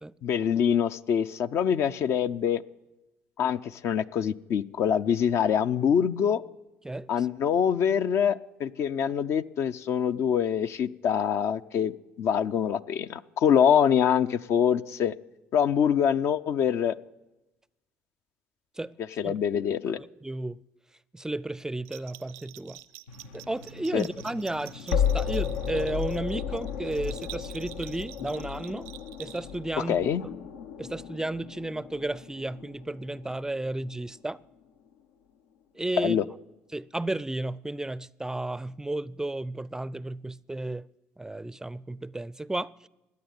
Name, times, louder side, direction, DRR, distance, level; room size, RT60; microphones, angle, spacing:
voice 1, 0.2-2.6 3.4-6.4 7.1-15.2 15.5-16.9 19.2-20.0 23.9-24.0 29.8-30.2 36.0-36.2, left 8 dB, 60° left, 0.6 m, -25 dB
voice 2, 6.8-7.3 18.8-18.9 19.2-19.4 20.0-20.6 21.1-22.8 23.3-28.9 29.2-30.0 30.8-34.4 35.7-36.2 36.7-40.9 41.2-42.7, right 2 dB, 10° right, 0.4 m, -33 dB
Bell, 21.8-29.7, right 15 dB, 80° right, 0.6 m, -47 dB
sound 1, 23.1-34.1, left 7 dB, 85° left, 1.0 m, -34 dB
15.5 x 9.6 x 9.6 m
hypercardioid pair, 70°, 5 cm